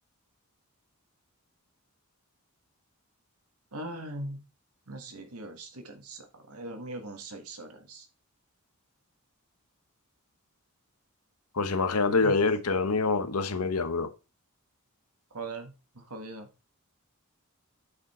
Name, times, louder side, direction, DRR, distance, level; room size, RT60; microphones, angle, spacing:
voice 1, 3.7-4.4 4.9-8.1 12.2-12.4 15.3-16.5, right 2 dB, 80° right, 1.7 m, -40 dB
voice 2, 11.6-14.1, left 4 dB, 85° left, 1.0 m, -26 dB
8.5 x 5.2 x 4.3 m
head